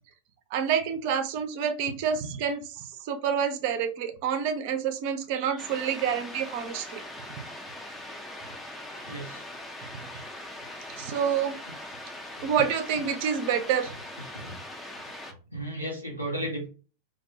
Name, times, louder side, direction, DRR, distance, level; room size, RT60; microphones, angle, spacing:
voice 1, 0.5-7.0 11.0-11.6 12.4-13.9, right 7 dB, 45° right, 7 dB, 0.4 m, -28 dB
sound 1, 5.6-15.3, left 1 dB, 10° left, 0.5 m, -41 dB
voice 2, 9.1-9.5 12.4-12.5 14.3-14.6 15.3-16.7, right 1 dB, 90° left, -2 dB, 0.8 m, -35 dB
2.3 x 2.0 x 2.6 m, 0.35 s
figure-of-eight pair, 90°, 0 cm